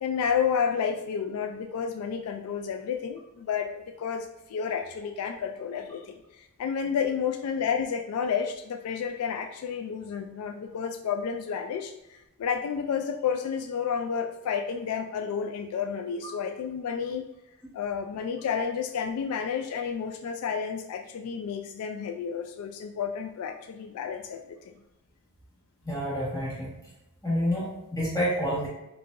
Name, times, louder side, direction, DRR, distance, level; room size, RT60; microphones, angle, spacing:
voice 1, 0.0-17.3 17.7-24.7, left 7 dB, 85° left, 6 dB, 0.3 m, -31 dB
voice 2, 25.8-26.7 27.2-28.7, equal, 15° left, -7 dB, 1.4 m, -28 dB
4.6 x 2.6 x 2.5 m, 0.93 s
head